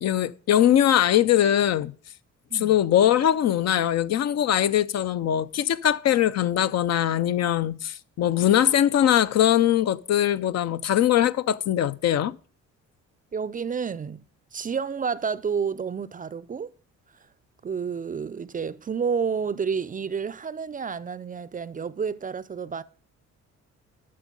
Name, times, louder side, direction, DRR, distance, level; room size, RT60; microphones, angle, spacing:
voice 1, 0.0-1.9 2.5-12.4, left 11 dB, 60° left, 0.6 m, -21 dB
voice 2, 13.3-14.2 14.5-16.7 17.6-22.8, right 6 dB, 30° right, 0.4 m, -30 dB
12.0 x 6.4 x 5.3 m
cardioid pair, 90°, 30 cm